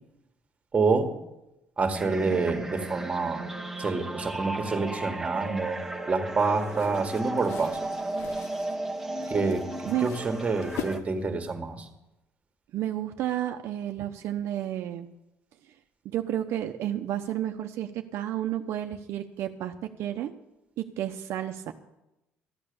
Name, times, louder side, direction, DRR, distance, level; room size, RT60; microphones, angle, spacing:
voice 1, 0.7-1.1 1.8-3.5 3.8-5.8 6.1-7.8 9.3-11.9, right 4 dB, 25° right, 7 dB, 1.8 m, -27 dB
sound 1, 1.9-11.0, right 2 dB, 10° right, 1.2 m, -34 dB
sound 2, 6.6-11.5, left 8 dB, 80° left, 1.1 m, -43 dB
voice 2, 12.7-15.1 16.0-20.3 20.8-21.7, right 12 dB, 70° right, 5 dB, 0.8 m, -31 dB
13.0 x 8.8 x 7.0 m, 0.94 s
cardioid pair, 100°, 5 cm